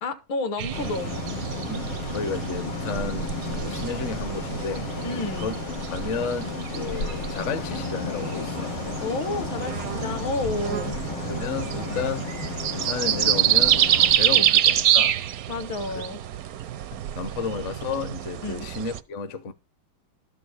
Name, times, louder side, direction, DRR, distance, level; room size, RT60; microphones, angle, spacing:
voice 1, 0.0-1.1 5.0-5.5 9.0-10.9 14.4-14.6 15.5-16.2 18.4-18.7, left 3 dB, 70° left, 2.2 m, -30 dB
sound 1, 0.6-19.0, right 11 dB, 70° right, 0.8 m, -27 dB
sound 2, 0.7-14.2, left 5 dB, 85° left, 2.2 m, -33 dB
voice 2, 1.7-4.9 5.4-5.5 5.9-8.8 11.3-12.3 12.7-13.8 14.2-15.2 17.2-19.5, left 5 dB, 50° left, 1.0 m, -32 dB
13.0 x 5.0 x 6.3 m
omnidirectional pair, 2.2 m